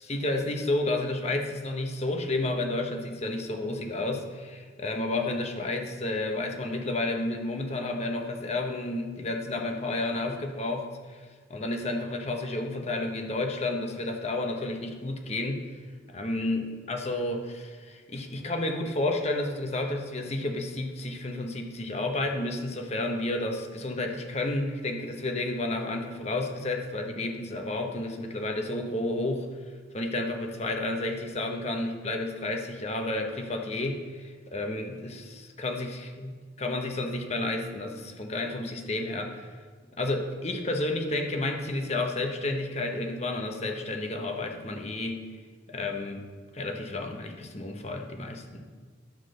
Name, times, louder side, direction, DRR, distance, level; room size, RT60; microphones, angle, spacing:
voice 1, 0.1-11.2 11.5-15.6 16.1-29.5 29.9-36.3 36.6-39.5 40.0-45.3 45.7-46.3 46.5-48.6, left 2 dB, 35° left, 3 dB, 1.0 m, -31 dB
11.5 x 4.8 x 6.4 m, 1.5 s
head